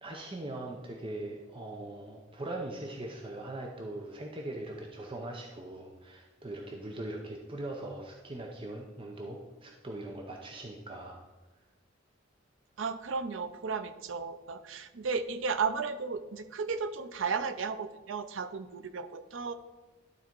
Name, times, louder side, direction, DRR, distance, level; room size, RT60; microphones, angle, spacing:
voice 1, 0.0-11.2, right 1 dB, 25° right, 1 dB, 0.7 m, -41 dB
voice 2, 12.8-19.5, right 5 dB, 75° right, 11 dB, 0.5 m, -34 dB
11.5 x 4.1 x 4.5 m, 1.2 s
head